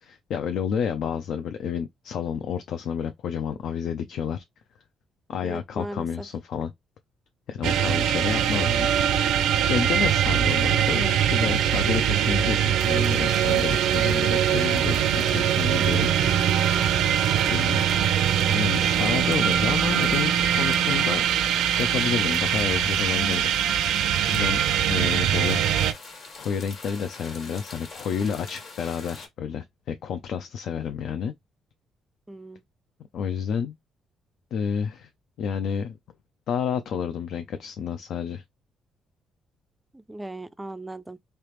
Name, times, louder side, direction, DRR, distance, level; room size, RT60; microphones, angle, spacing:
voice 1, 0.0-4.4 5.3-6.7 7.5-8.9 9.4-16.1 17.5-18.2 18.5-21.2 21.7-23.5 23.8-25.6 26.4-31.3 33.1-33.7 34.5-35.1 35.4-36.0 36.5-38.4, left 7 dB, 70° left, 0.4 m, -30 dB
voice 2, 5.4-6.3 32.3-32.6 39.9-41.2, right 1 dB, 10° right, 0.3 m, -38 dB
sound 1, 7.6-25.9, right 9 dB, 90° right, 0.5 m, -22 dB
sound 2, 12.8-29.3, left 3 dB, 55° left, 1.5 m, -45 dB
3.4 x 2.8 x 3.1 m
cardioid pair, 110°, 0 cm